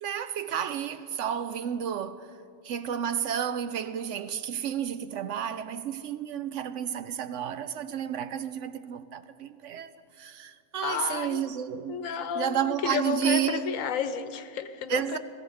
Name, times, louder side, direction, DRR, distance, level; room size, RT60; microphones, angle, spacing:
voice 1, 0.0-2.3 2.6-9.9 10.2-12.0 12.3-13.6 14.9-15.2, right 9 dB, 70° right, 0.8 m, -31 dB
voice 2, 10.8-11.4 11.9-15.2, left 7 dB, 75° left, 1.2 m, -31 dB
17.0 x 15.0 x 5.6 m
omnidirectional pair, 1.4 m